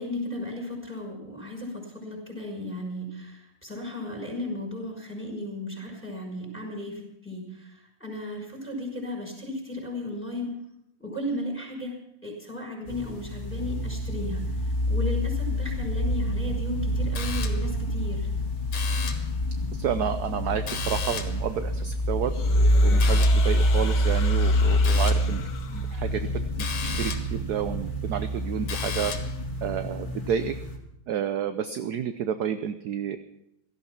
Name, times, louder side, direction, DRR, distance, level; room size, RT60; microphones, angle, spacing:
voice 1, 0.0-10.6 11.0-18.3, left 1 dB, 5° left, 1 dB, 5.7 m, -35 dB
sound 1, 12.9-30.7, equal, 25° left, 2.6 m, -26 dB
sound 2, 17.2-17.8 18.7-19.4 20.7-21.5 23.0-23.5 24.8-25.4 26.6-27.4 28.7-29.4, left 6 dB, 85° left, 2.4 m, -35 dB
voice 2, 19.8-22.3 22.8-29.1 29.6-30.6 31.1-33.2, right 8 dB, 65° right, 9 dB, 1.0 m, -30 dB
sound 3, 22.3-26.3, left 6 dB, 60° left, 1.9 m, -39 dB
17.0 x 13.5 x 5.9 m, 0.81 s
omnidirectional pair, 2.3 m